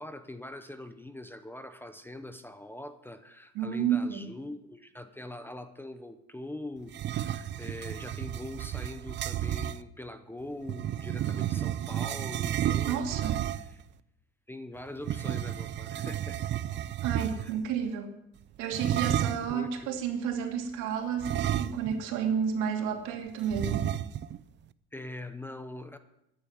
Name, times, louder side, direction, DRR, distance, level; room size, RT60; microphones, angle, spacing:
voice 1, 0.0-13.8 14.5-16.5 17.4-17.5 19.5-20.0 24.9-26.0, left 1 dB, 5° left, 9 dB, 0.8 m, -43 dB
voice 2, 3.5-4.3 12.9-13.4 17.0-18.1 18.6-23.9, right 7 dB, 75° right, 3 dB, 3.0 m, -31 dB
sound 1, 6.9-9.8 10.7-13.8 15.0-17.6 18.7-19.6 21.2-22.1 22.4-22.5 23.5-24.4, right 11 dB, 35° right, 0.5 m, -32 dB
14.0 x 10.5 x 7.7 m, 0.83 s
cardioid pair, 140°, 30 cm